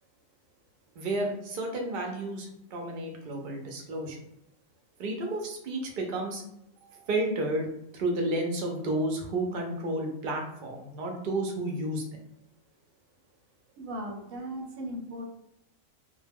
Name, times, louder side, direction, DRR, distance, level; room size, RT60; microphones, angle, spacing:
voice 1, 1.0-4.2 5.0-6.4 6.8-7.7 7.9-12.2, right 1 dB, 55° right, 2 dB, 0.6 m, -31 dB
voice 2, 13.7-15.3, equal, 85° right, 2 dB, 1.0 m, -37 dB
2.2 x 2.1 x 3.3 m, 0.78 s
omnidirectional pair, 1.4 m